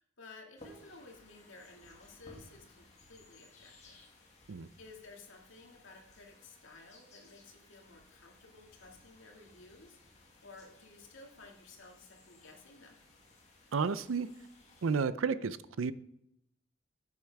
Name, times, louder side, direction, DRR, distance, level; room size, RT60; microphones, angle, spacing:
voice 1, 0.0-4.0 4.8-10.0 10.4-13.0, left 3 dB, 85° left, 1 dB, 2.1 m, -55 dB
sound 1, 0.6-15.0, left 1 dB, 35° left, 2.0 m, -60 dB
voice 2, 13.7-14.3 14.8-15.9, right 5 dB, 90° right, 15 dB, 0.5 m, -31 dB
10.0 x 8.2 x 3.5 m, 0.78 s
head